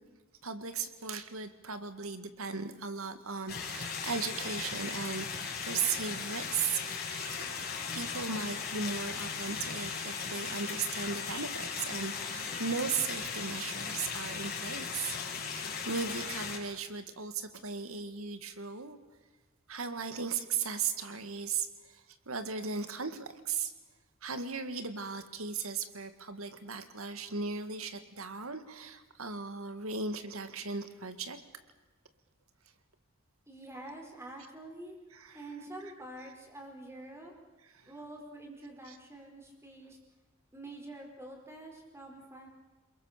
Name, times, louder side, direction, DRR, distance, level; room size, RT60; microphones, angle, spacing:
voice 1, 0.4-7.4 7.9-15.2 15.4-19.0 19.7-23.7 24.2-31.4 35.1-35.4 37.8-37.9, right 5 dB, 70° right, 10 dB, 2.0 m, -37 dB
sound 1, 3.5-16.6, left 5 dB, 45° left, 5.5 m, -37 dB
voice 2, 33.5-35.0 35.3-37.3 37.9-40.0 40.5-42.5, right 1 dB, 10° right, 1 dB, 4.7 m, -47 dB
28.5 x 22.0 x 6.8 m, 1.2 s
head